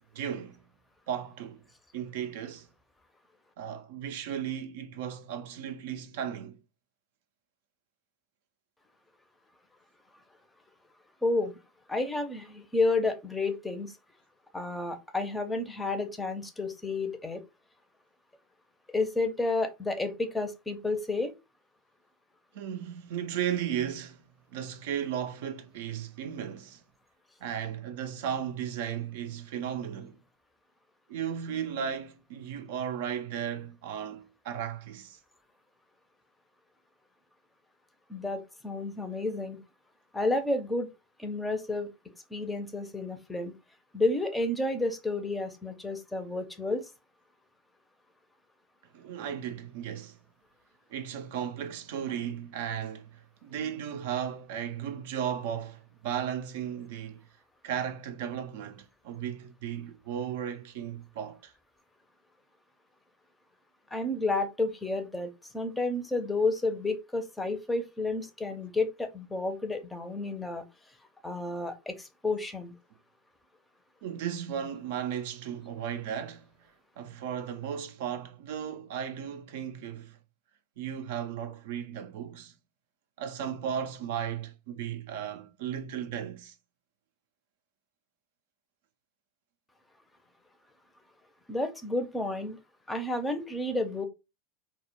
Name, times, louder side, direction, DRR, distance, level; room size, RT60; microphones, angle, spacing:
voice 1, 0.1-0.6 1.1-1.6 1.9-2.7 3.6-6.6 22.5-24.2 24.5-26.8 27.4-30.2 31.1-35.2 48.9-50.2 50.9-57.2 57.6-61.5 74.0-76.4 77.0-80.2 80.8-82.5 83.2-86.6, right 9 dB, 65° right, 0.3 m, -35 dB
voice 2, 11.2-11.5 11.9-13.9 14.5-17.4 18.9-21.3 38.1-39.6 40.1-40.9 41.2-41.9 42.3-43.5 43.9-46.8 63.9-70.6 71.2-72.7 91.5-92.6 92.9-94.1, left 2 dB, 10° left, 0.5 m, -31 dB
2.1 x 2.0 x 2.9 m
hypercardioid pair, 90°, 0 cm